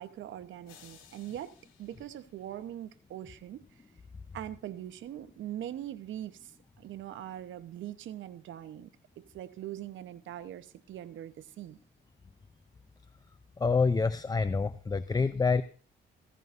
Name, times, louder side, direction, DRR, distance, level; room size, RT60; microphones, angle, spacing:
voice 1, 0.0-1.5 1.8-3.6 4.3-6.5 6.8-8.9 9.2-11.8, right 12 dB, 75° right, 1.0 m, -42 dB
sound 1, 0.7-3.0, left 8 dB, 90° left, 4.4 m, -59 dB
voice 2, 13.6-15.6, left 4 dB, 20° left, 0.5 m, -27 dB
16.0 x 15.0 x 2.6 m
cardioid pair, 90°, 20 cm